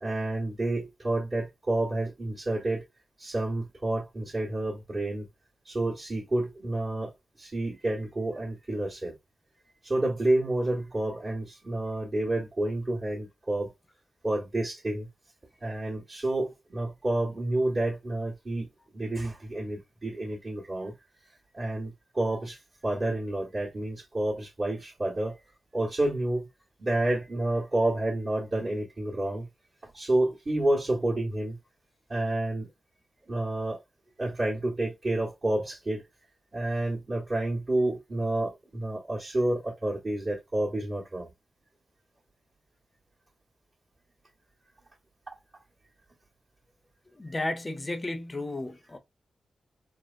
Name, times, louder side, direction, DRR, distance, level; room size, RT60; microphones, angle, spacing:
voice 1, 0.0-2.8 3.2-5.3 5.6-7.1 7.4-9.1 9.8-13.7 14.2-15.1 15.6-18.7 18.9-20.9 21.5-25.3 25.7-26.5 26.8-29.5 29.8-31.6 32.1-32.7 33.3-33.8 34.2-36.0 36.5-41.3 45.3-45.4, right 1 dB, 40° right, 1.4 m, -29 dB
voice 2, 47.2-49.0, left 2 dB, 30° left, 0.7 m, -33 dB
4.4 x 2.1 x 2.5 m
cardioid pair, 80°, 0 cm